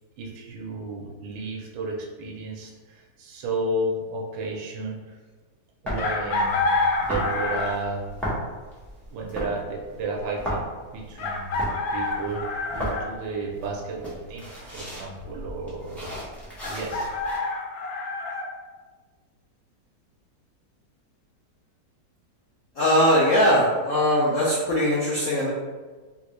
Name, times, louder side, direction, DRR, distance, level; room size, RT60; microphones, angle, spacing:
voice 1, 0.2-5.1 5.8-8.1 9.1-11.6 11.9-16.1 16.7-17.1, right 2 dB, 90° right, -1 dB, 1.3 m, -33 dB
sound 1, 5.9-17.4, equal, ahead, 0.4 m, -35 dB
Chicken rooster, 6.0-7.9 9.6-9.7 11.2-13.1 16.6-18.5, left 3 dB, 85° left, 1.4 m, -27 dB
voice 2, 22.8-25.5, equal, 65° left, -7 dB, 0.8 m, -20 dB
3.4 x 2.5 x 3.1 m, 1.4 s
omnidirectional pair, 2.0 m